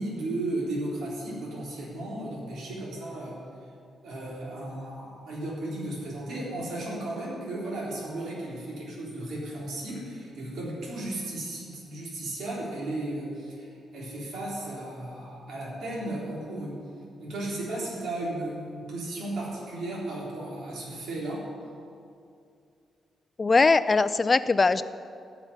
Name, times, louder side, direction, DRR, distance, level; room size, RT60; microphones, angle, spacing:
voice 1, 0.0-3.4 4.0-16.8 17.2-21.5, right 1 dB, 65° right, -5 dB, 3.6 m, -35 dB
voice 2, 23.4-24.8, left 3 dB, 20° left, 14 dB, 0.3 m, -21 dB
14.5 x 6.0 x 9.8 m, 2.4 s
wide cardioid pair, 175°, 0 cm